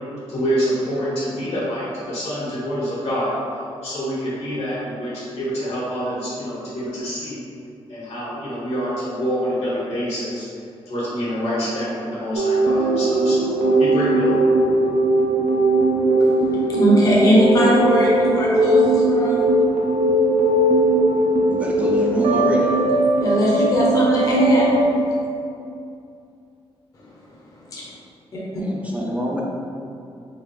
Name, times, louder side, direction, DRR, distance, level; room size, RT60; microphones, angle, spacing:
voice 1, 0.3-3.3 3.8-7.4 7.9-10.5 10.9-14.5, equal, 80° left, -8 dB, 1.4 m, -26 dB
sound 1, 12.3-24.8, right 2 dB, 80° right, 0.5 m, -19 dB
voice 2, 16.2-19.5 23.2-24.9 27.0-27.1 27.7-27.9 28.3-28.4, equal, 35° left, -6 dB, 0.6 m, -20 dB
voice 3, 21.5-22.7 28.6-29.4, equal, 15° right, -3 dB, 0.4 m, -25 dB
3.7 x 3.0 x 3.1 m, 2.5 s
wide cardioid pair, 155°, 10 cm